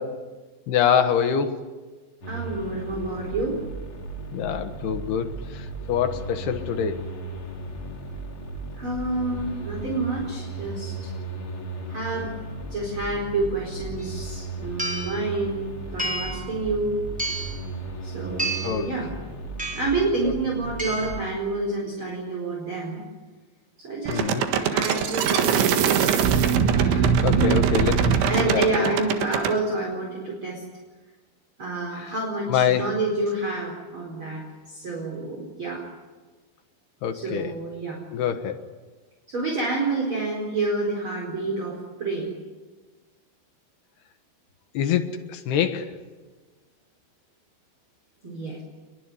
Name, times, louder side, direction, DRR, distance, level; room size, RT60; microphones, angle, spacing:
voice 1, 0.7-1.8 4.3-7.1 18.6-18.9 20.2-20.4 24.1-24.4 26.8-29.0 32.0-32.1 32.5-32.9 37.0-37.5 38.1-38.6 44.7-46.0, left 8 dB, 70° left, 7 dB, 3.1 m, -25 dB
sound 1, 2.2-21.1, right 3 dB, 35° left, 3.3 m, -36 dB
voice 2, 2.3-3.6 8.7-11.1 11.4-11.5 11.8-12.3 12.7-15.7 15.9-17.0 18.0-19.1 19.7-23.0 23.8-24.2 24.5-26.1 28.3-30.6 31.6-35.8 37.1-38.0 39.3-42.3 48.2-48.6, right 2 dB, 30° right, -1 dB, 5.0 m, -28 dB
sound 2, 14.0-14.1 14.8-15.2 16.0-16.5 17.2-17.6 18.4-18.9 19.6-20.0 20.8-21.2, right 2 dB, ahead, 4.0 m, -30 dB
sound 3, 24.1-29.5, right 7 dB, 80° right, 4.0 m, -21 dB
27.0 x 22.5 x 9.8 m, 1.3 s
omnidirectional pair, 5.2 m